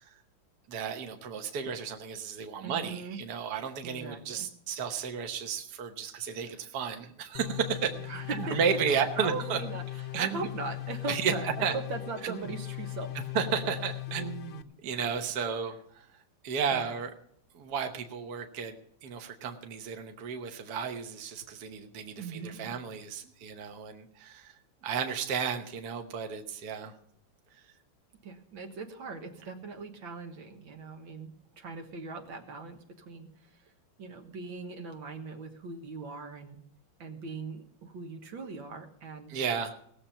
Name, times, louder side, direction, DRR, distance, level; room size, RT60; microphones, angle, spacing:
voice 1, 0.7-7.9 8.4-9.6 10.1-10.5 11.1-11.3 11.6-11.7 12.2-12.4 13.3-16.1 16.4-17.1 17.5-18.7 19.0-24.5 24.8-26.9 39.3-39.7, right 6 dB, 60° right, 5 dB, 1.6 m, -33 dB
voice 2, 2.6-3.2 3.8-4.5 6.5-6.6 8.1-13.1 14.9-15.1 16.7-16.9 22.2-22.7 28.2-33.6 34.0-36.6 37.0-39.3, right 3 dB, 85° right, 4 dB, 2.2 m, -40 dB
sound 1, 7.3-14.6, left 16 dB, 65° left, 1.3 m, -39 dB
18.5 x 7.4 x 5.6 m, 0.69 s
omnidirectional pair, 2.1 m